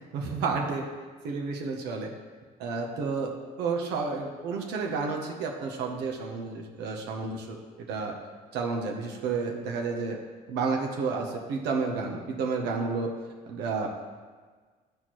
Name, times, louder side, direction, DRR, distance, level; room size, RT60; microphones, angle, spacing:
voice 1, 0.1-0.9 1.2-2.1 2.6-7.6 7.9-8.1 8.5-10.2 10.5-13.1 13.5-13.9, right 4 dB, 90° right, 1 dB, 0.9 m, -31 dB
11.5 x 4.3 x 3.1 m, 1.5 s
cardioid pair, 110°, 17 cm